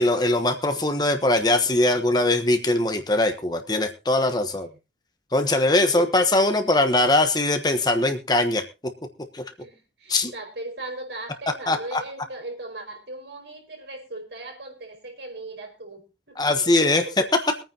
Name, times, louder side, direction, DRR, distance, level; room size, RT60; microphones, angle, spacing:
voice 1, 0.0-4.7 5.3-8.6 9.3-9.4 10.1-10.3 11.7-12.0 16.4-17.2, left 2 dB, 20° left, 7 dB, 1.1 m, -21 dB
voice 2, 9.6-17.1, right 2 dB, 75° right, 2 dB, 5.0 m, -38 dB
23.0 x 9.3 x 2.9 m, 0.29 s
head